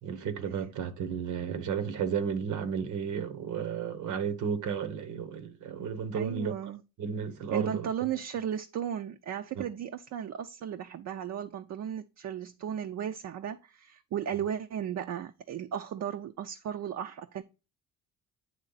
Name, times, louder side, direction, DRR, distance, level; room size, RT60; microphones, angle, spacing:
voice 1, 0.0-6.7 7.0-7.9 9.6-9.7, right 7 dB, 75° right, 1.2 m, -33 dB
voice 2, 6.1-6.8 7.5-17.4, right 9 dB, 60° right, 0.6 m, -35 dB
9.5 x 3.3 x 4.0 m
cardioid pair, 90°, 30 cm